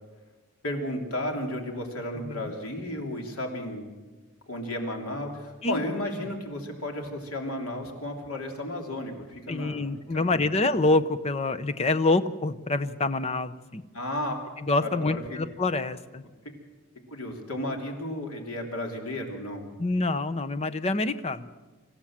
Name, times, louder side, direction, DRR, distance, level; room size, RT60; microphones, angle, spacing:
voice 1, 0.6-3.9 4.5-9.8 10.1-10.4 13.9-14.3 14.8-15.4 17.1-19.7, left 1 dB, 80° left, 2 dB, 3.2 m, -33 dB
voice 2, 2.2-2.5 5.6-5.8 9.5-13.8 14.7-16.2 19.8-21.5, left 2 dB, 30° left, 12 dB, 0.7 m, -26 dB
26.0 x 15.0 x 7.4 m, 1.3 s
head